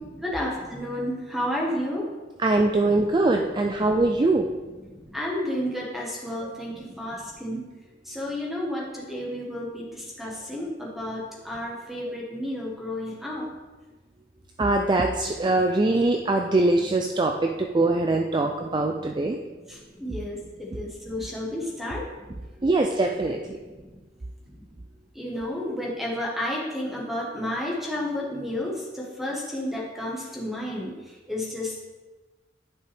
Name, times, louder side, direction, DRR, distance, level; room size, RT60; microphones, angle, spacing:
voice 1, 0.1-2.1 3.8-4.2 4.9-7.7 8.0-13.5 19.5-22.7 23.7-24.0 24.5-24.7 25.1-31.8, left 1 dB, ahead, -4 dB, 1.5 m, -32 dB
voice 2, 2.4-4.5 6.4-6.5 14.6-19.4 22.6-23.6, right 2 dB, 25° right, 3 dB, 0.4 m, -22 dB
10.0 x 5.9 x 3.5 m, 1.3 s
head